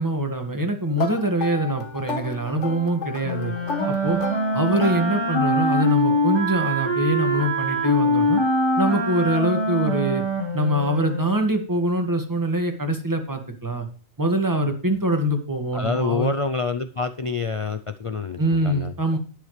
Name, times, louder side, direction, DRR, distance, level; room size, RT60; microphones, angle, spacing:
voice 1, 0.0-3.5 3.9-4.2 4.5-8.4 8.8-10.2 10.5-13.9 14.2-16.3 18.4-19.2, right 1 dB, 15° right, 4 dB, 1.9 m, -24 dB
sound 1, 1.0-5.6, left 5 dB, 65° left, 1.7 m, -33 dB
Wind instrument woodwind instrument, 3.2-11.4, equal, 20° left, 3.9 m, -23 dB
voice 2, 15.7-18.9, left 4 dB, 45° left, 10 dB, 0.4 m, -27 dB
19.0 x 6.8 x 3.3 m, 0.39 s
omnidirectional pair, 1.4 m